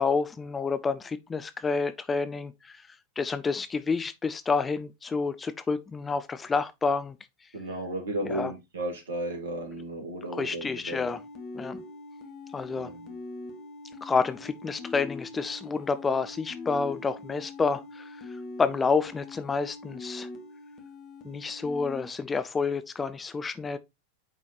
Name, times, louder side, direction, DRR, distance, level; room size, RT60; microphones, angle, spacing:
voice 1, 0.0-2.9 3.2-7.2 8.3-8.5 10.3-11.2 11.5-11.8 12.5-12.9 14.0-18.3 18.6-20.3 21.2-23.8, left 4 dB, 15° left, 0.5 m, -29 dB
voice 2, 7.5-11.1 12.7-13.1, right 1 dB, 65° right, 2.1 m, -34 dB
sound 1, 10.9-22.1, left 3 dB, 35° left, 1.3 m, -43 dB
8.8 x 4.0 x 2.9 m
figure-of-eight pair, 90°, 0 cm